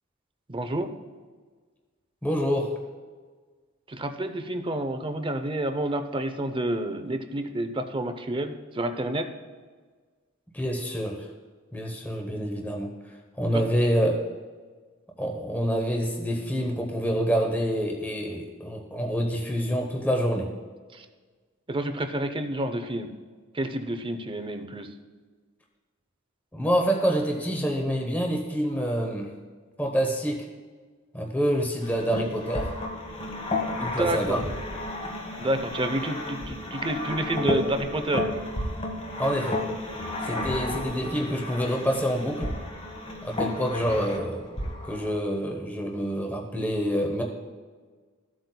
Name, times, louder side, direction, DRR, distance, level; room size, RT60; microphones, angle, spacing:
voice 1, 0.5-0.9 3.9-9.3 13.5-13.6 20.9-21.1 21.7-23.1 23.5-24.9 33.8-34.4 35.4-38.3, right 1 dB, 25° right, 8 dB, 0.6 m, -29 dB
voice 2, 2.2-2.7 10.5-11.3 11.7-12.9 13.3-14.2 15.2-20.5 26.5-29.3 29.8-30.5 31.1-32.7 33.8-34.4 39.2-39.6 40.2-42.5 43.2-44.4 44.9-47.2, equal, 10° left, 1 dB, 0.8 m, -27 dB
sound 1, 31.8-45.2, left 1 dB, 30° left, 1.2 m, -32 dB
14.5 x 7.9 x 2.2 m, 1.5 s
head